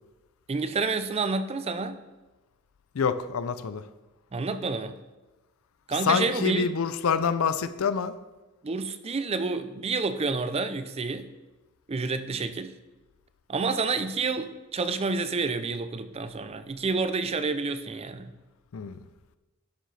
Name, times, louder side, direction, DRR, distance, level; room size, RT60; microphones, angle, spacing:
voice 1, 0.5-2.0 4.3-5.0 5.9-6.7 8.6-11.3 11.9-12.8 13.5-18.3, right 4 dB, 30° right, 11 dB, 0.4 m, -29 dB
voice 2, 2.9-3.9 5.9-8.2 18.7-19.0, left 6 dB, 80° left, 13 dB, 0.5 m, -26 dB
11.0 x 6.4 x 3.3 m, 1.1 s
head